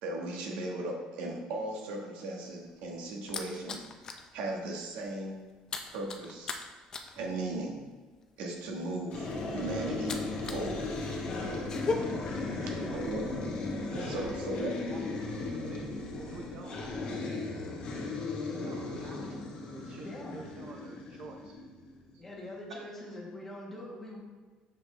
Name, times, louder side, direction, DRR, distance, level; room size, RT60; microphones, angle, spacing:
voice 1, 0.0-3.8 4.3-5.4 5.9-6.6 7.2-7.8 8.4-10.2 10.4-10.9 12.9-13.3 14.0-14.7, right 2 dB, 85° right, 0 dB, 1.4 m, -37 dB
sound 1, 2.5-4.3 4.6-4.9 5.1-10.7 11.0-11.9, left 4 dB, 25° left, 0.5 m, -38 dB
sound 2, 9.1-22.0, left 3 dB, 45° left, 1.1 m, -36 dB
voice 2, 12.5-13.1 20.0-20.4 22.2-24.2, left 1 dB, 10° left, -3 dB, 1.3 m, -43 dB
voice 3, 13.9-15.0 15.6-16.8 18.5-19.4 19.7-21.5, right 4 dB, 45° right, 1 dB, 0.6 m, -47 dB
6.5 x 4.8 x 3.3 m, 1.4 s
cardioid pair, 165°, 2 cm